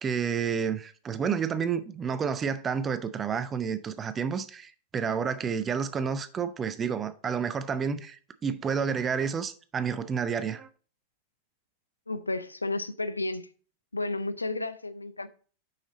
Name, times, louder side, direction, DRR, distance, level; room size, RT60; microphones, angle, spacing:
voice 1, 0.0-10.7, right 6 dB, 20° right, 0.6 m, -30 dB
voice 2, 12.1-13.4 13.9-15.3, left 2 dB, 80° left, 0.5 m, -32 dB
6.1 x 5.8 x 3.8 m
figure-of-eight pair, 90°, 0 cm